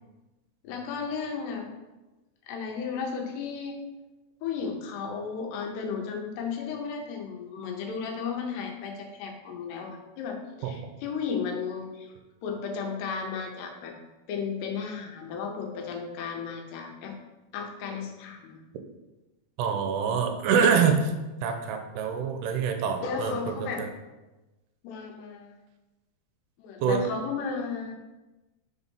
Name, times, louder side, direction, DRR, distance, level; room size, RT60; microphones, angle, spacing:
voice 1, 0.6-1.7 2.5-3.8 4.4-12.1 12.4-13.9 14.3-17.1 17.5-18.6 23.0-23.9 24.8-25.6 26.6-27.9, left 5 dB, 90° left, 2 dB, 3.1 m, -34 dB
voice 2, 19.6-21.1 21.4-23.4 23.8-23.9 26.8-27.0, right 6 dB, 90° right, 5 dB, 2.8 m, -25 dB
6.6 x 4.1 x 5.4 m, 1.1 s
omnidirectional pair, 4.7 m